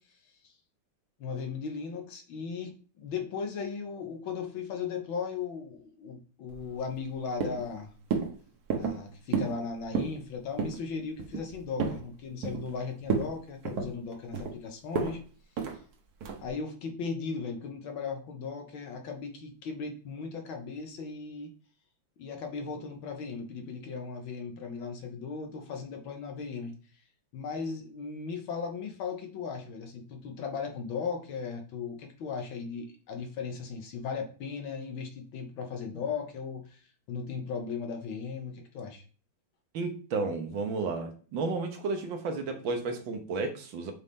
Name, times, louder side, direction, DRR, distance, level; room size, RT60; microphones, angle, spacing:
voice 1, 1.2-7.9 8.7-15.2 15.7-15.8 16.4-21.5 22.2-26.7 27.3-36.8 37.1-39.0, left 5 dB, 75° left, 3 dB, 1.9 m, -37 dB
sound 1, 6.5-7.1 7.4-7.7 8.1-8.3 8.7-9.0 9.3-9.6 9.8-10.2 10.6-10.8 11.2-12.0 12.4-12.8 13.1-13.3 13.6-14.5 14.9-15.2 15.6-15.8 16.2-16.5, right 5 dB, 55° right, 1.3 m, -31 dB
voice 2, 39.7-43.9, right 3 dB, 70° right, 6 dB, 1.7 m, -32 dB
6.9 x 4.0 x 3.6 m, 0.40 s
omnidirectional pair, 2.2 m